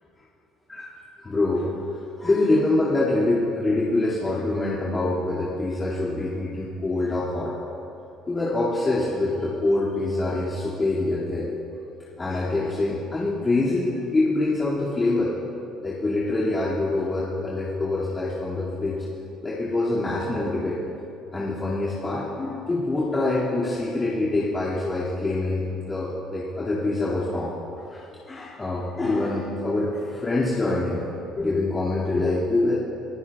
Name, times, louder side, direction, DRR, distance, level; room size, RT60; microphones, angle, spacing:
voice 1, 1.2-1.7 2.2-7.5 8.3-11.6 12.2-15.3 15.8-19.0 19.4-20.8 21.3-27.5 27.9-31.0 31.3-32.7, left 2 dB, 20° left, -8 dB, 2.3 m, -25 dB
25.5 x 14.5 x 2.4 m, 2.8 s
cardioid pair, 130°, 0 cm